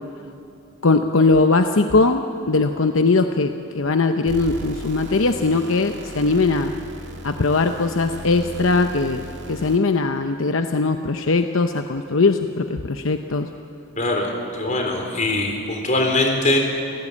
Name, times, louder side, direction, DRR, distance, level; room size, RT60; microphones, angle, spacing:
voice 1, 0.8-6.7 7.2-9.2 9.5-13.5, left 3 dB, 70° left, 7 dB, 0.8 m, -20 dB
sound 1, 4.3-10.0, right 1 dB, 55° right, 2.0 m, -37 dB
voice 2, 14.0-16.6, left 2 dB, 35° left, 2 dB, 3.7 m, -22 dB
28.5 x 16.0 x 8.5 m, 2.7 s
head